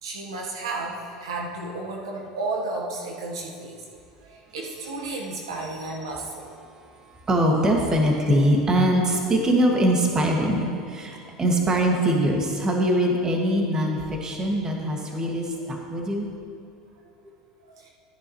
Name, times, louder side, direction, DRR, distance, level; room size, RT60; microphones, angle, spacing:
voice 1, 0.0-3.8 4.2-6.4 17.6-17.9, right 2 dB, 90° right, -1 dB, 1.4 m, -33 dB
voice 2, 7.3-16.3, right 1 dB, 25° right, 0 dB, 2.1 m, -22 dB
14.5 x 9.7 x 3.2 m, 2.4 s
hypercardioid pair, 90°, 2 cm